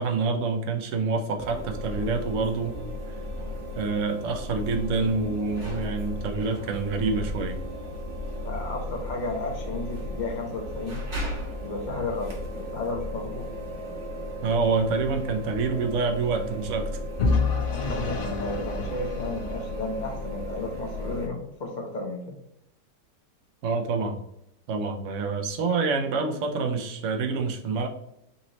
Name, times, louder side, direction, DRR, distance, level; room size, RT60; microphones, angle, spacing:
voice 1, 0.0-2.8 3.8-7.6 14.4-16.9 23.6-24.2 24.7-27.9, right 4 dB, 60° right, 4 dB, 0.8 m, -27 dB
sound 1, 1.4-21.3, equal, 40° right, 1.0 m, -35 dB
voice 2, 8.4-11.0 11.6-13.5 17.7-22.3, left 3 dB, 40° left, 1 dB, 0.7 m, -33 dB
Vehicle / Engine, 17.2-20.2, left 4 dB, 85° left, 0.4 m, -28 dB
4.1 x 2.9 x 3.9 m, 0.80 s
omnidirectional pair, 1.9 m